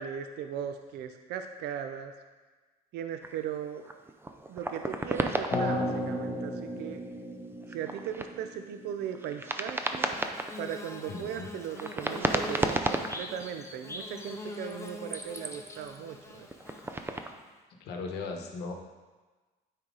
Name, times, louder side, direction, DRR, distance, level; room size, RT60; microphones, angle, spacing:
voice 1, 0.0-2.1 2.9-3.8 4.5-7.0 7.7-10.2 10.6-16.5, right 9 dB, 75° right, 7 dB, 0.5 m, -38 dB
sound 1, 3.2-3.4 3.7-6.0 6.6-6.7 7.6-8.3 9.1-10.6 11.5-13.4 14.5-16.0 16.5-17.3, right 2 dB, 15° right, 0.5 m, -33 dB
sound 2, 5.5-9.6, left 1 dB, 45° left, 2.2 m, -35 dB
Bird / Buzz, 9.7-17.4, left 2 dB, 15° left, 0.7 m, -44 dB
voice 2, 11.1-11.5 17.8-18.7, left 4 dB, 80° left, 3 dB, 1.1 m, -37 dB
8.8 x 4.5 x 3.8 m, 1.3 s
cardioid pair, 110°, 17 cm